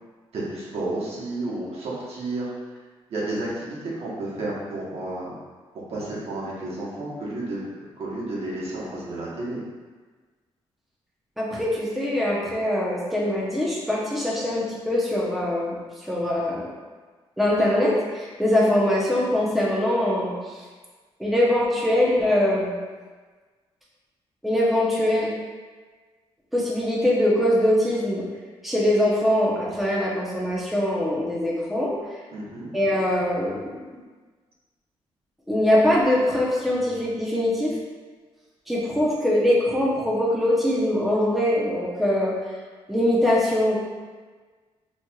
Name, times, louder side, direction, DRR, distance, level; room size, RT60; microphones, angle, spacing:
voice 1, 0.3-2.5 3.1-5.3 5.7-9.6 32.3-32.7, right 2 dB, 70° right, -6 dB, 1.1 m, -31 dB
voice 2, 11.4-15.7 16.1-16.7 17.4-20.3 21.2-22.8 24.4-25.3 26.5-28.2 28.6-31.9 32.7-33.6 35.5-37.7 38.7-42.3 42.9-43.7, left 1 dB, ahead, -5 dB, 0.8 m, -22 dB
4.2 x 3.1 x 2.3 m, 1.4 s
cardioid pair, 95°, 11 cm